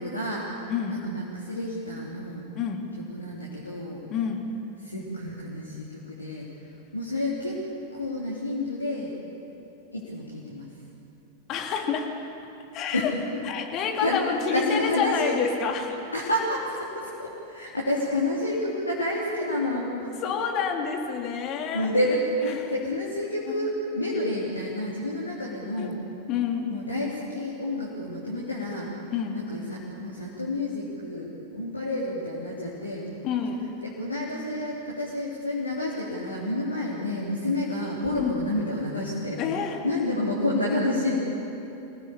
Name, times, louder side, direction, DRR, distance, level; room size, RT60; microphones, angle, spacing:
voice 1, 0.0-0.6 0.9-2.4 3.1-4.0 4.8-6.5 6.9-7.6 7.9-9.1 9.9-10.7 12.9-13.1 14.0-14.2 14.5-15.4 16.1-20.1 21.7-26.0 26.7-28.9 29.3-33.1 33.8-39.4 39.8-41.3, left 1 dB, 80° left, -5 dB, 3.2 m, -29 dB
voice 2, 0.7-1.0 2.5-2.9 4.1-4.5 11.5-12.1 12.7-13.1 13.4-16.0 19.8-21.9 22.5-22.7 23.4-23.7 25.8-25.9 26.3-26.8 29.1-29.5 33.2-33.6 38.2-38.4 39.4-39.8, left 7 dB, 35° left, 3 dB, 2.9 m, -29 dB
25.5 x 18.0 x 8.6 m, 3.0 s
figure-of-eight pair, 90°, 0 cm